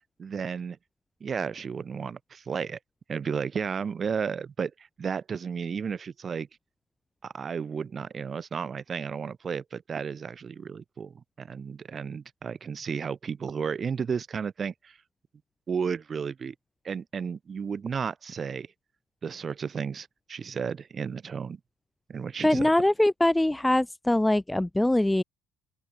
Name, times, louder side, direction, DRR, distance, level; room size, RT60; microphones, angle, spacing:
voice 1, 0.2-0.8 1.2-2.8 3.1-6.5 7.2-15.0 15.7-16.5 16.8-18.7 19.2-21.6 22.1-22.7, right 6 dB, 30° right, 5.9 m, -33 dB
voice 2, 22.4-25.2, left 1 dB, 5° left, 0.5 m, -23 dB
open air
figure-of-eight pair, 55°, 0 cm